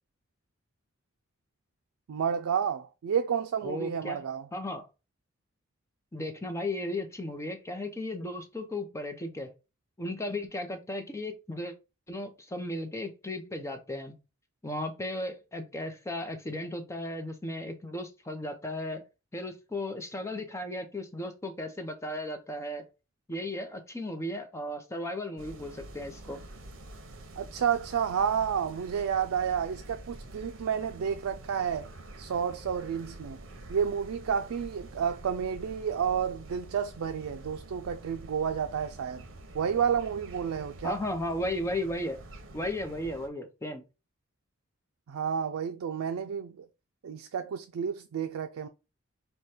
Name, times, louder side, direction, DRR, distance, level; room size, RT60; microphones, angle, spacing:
voice 1, 2.1-4.5 27.3-31.9 32.2-33.4 33.7-39.2 39.5-41.0 45.1-46.7 47.0-48.7, right 7 dB, 85° right, 0.4 m, -30 dB
voice 2, 3.6-4.2 4.5-4.9 6.1-9.5 10.0-11.7 12.1-14.2 14.6-19.0 19.3-22.8 23.3-26.4 40.8-42.2 42.5-43.8, left 1 dB, 15° left, 0.6 m, -35 dB
sound 1, 25.4-43.3, right 1 dB, 65° right, 0.9 m, -47 dB
4.9 x 2.2 x 4.2 m
head